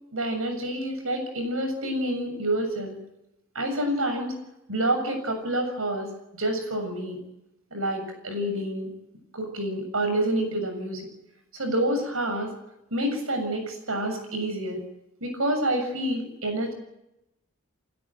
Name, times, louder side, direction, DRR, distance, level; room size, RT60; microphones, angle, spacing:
voice 1, 0.1-3.0 3.6-4.4 4.7-6.1 6.4-7.2 7.7-8.9 9.3-11.0 11.5-12.5 12.9-14.8 15.2-16.7, right 1 dB, 75° right, 6 dB, 7.2 m, -28 dB
29.5 x 13.0 x 8.9 m, 0.86 s
head